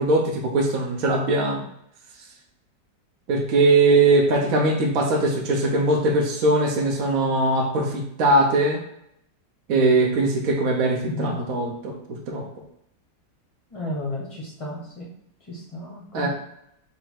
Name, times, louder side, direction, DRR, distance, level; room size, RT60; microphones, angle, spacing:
voice 1, 0.0-1.6 3.3-8.8 9.7-12.4 16.1-16.3, right 2 dB, 55° right, 1 dB, 1.2 m, -21 dB
voice 2, 13.7-15.1 15.5-16.3, left 1 dB, 25° left, -4 dB, 0.8 m, -33 dB
4.2 x 2.7 x 4.5 m, 0.76 s
omnidirectional pair, 1.9 m